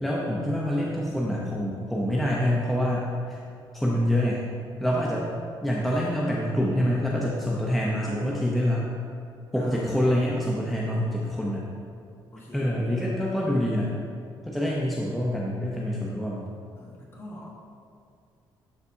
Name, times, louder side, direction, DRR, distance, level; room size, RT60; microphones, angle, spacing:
voice 1, 0.0-3.4 3.7-4.4 4.8-5.3 5.6-8.9 9.5-11.6 12.5-13.9 14.5-16.4, equal, ahead, -4 dB, 0.7 m, -26 dB
voice 2, 9.5-10.0 12.3-13.0 16.8-17.5, left 1 dB, 30° left, -3 dB, 1.4 m, -42 dB
11.5 x 4.0 x 2.7 m, 2.4 s
cardioid pair, 110°, 9 cm